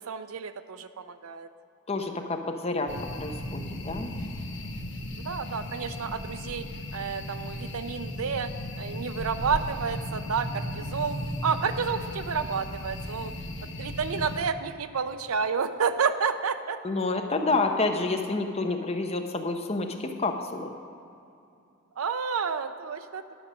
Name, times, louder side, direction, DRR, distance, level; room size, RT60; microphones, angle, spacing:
voice 1, 0.0-1.5 5.2-8.5 8.8-13.3 13.8-16.8 22.0-23.3, right 6 dB, 80° right, 11 dB, 0.6 m, -30 dB
voice 2, 1.9-4.1 16.8-20.7, left 3 dB, 30° left, 4 dB, 0.8 m, -29 dB
sound 1, 2.9-14.4, left 1 dB, 55° left, 1.1 m, -36 dB
11.0 x 6.6 x 6.2 m, 2.6 s
head